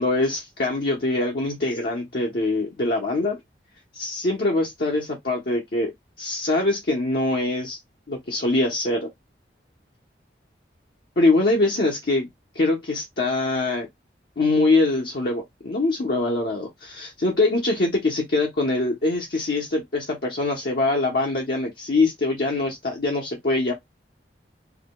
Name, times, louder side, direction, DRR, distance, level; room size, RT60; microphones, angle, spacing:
voice 1, 0.0-3.4 3.9-5.9 6.2-7.8 8.1-9.1 11.2-12.3 12.5-13.9 14.4-23.7, left 2 dB, 60° left, 0.9 m, -23 dB
4.7 x 2.2 x 2.2 m
head